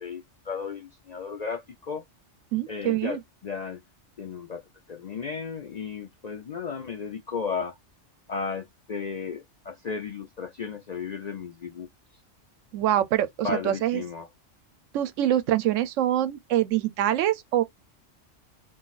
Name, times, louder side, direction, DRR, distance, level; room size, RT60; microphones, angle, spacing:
voice 1, 0.0-2.0 2.7-3.8 4.2-4.6 4.9-7.7 8.3-11.9 13.4-14.3, left 5 dB, 55° left, 0.4 m, -34 dB
voice 2, 2.5-3.2 12.7-14.0 14.9-17.6, right 12 dB, 90° right, 0.9 m, -25 dB
4.0 x 2.4 x 2.4 m
omnidirectional pair, 1.3 m